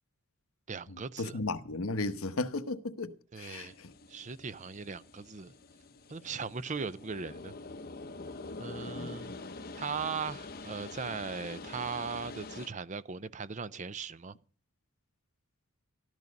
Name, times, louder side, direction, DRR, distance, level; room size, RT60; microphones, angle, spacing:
voice 1, 0.7-1.4 3.3-3.7 4.1-5.5 6.1-7.5 8.6-9.3 9.7-14.3, right 5 dB, 35° right, 0.6 m, -38 dB
voice 2, 1.2-3.1 3.4-3.7 8.9-9.2, left 2 dB, 75° left, 1.1 m, -34 dB
sound 1, 3.5-12.7, left 3 dB, 45° left, 0.8 m, -46 dB
14.0 x 13.5 x 5.3 m
head